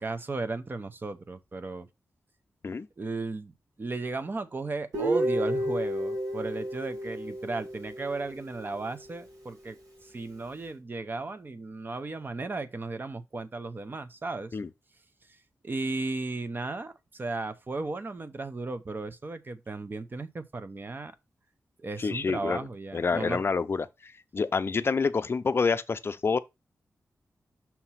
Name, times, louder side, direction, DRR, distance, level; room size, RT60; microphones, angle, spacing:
voice 1, 0.0-1.9 3.0-3.5 3.8-9.8 10.0-14.6 15.6-21.1 21.8-23.4, right 3 dB, 35° right, 0.7 m, -35 dB
Guitar, 4.9-8.8, right 1 dB, 85° right, 2.1 m, -31 dB
voice 2, 22.0-22.7 22.9-26.4, left 4 dB, 40° left, 0.5 m, -28 dB
5.8 x 2.9 x 5.6 m
wide cardioid pair, 105°, 6 cm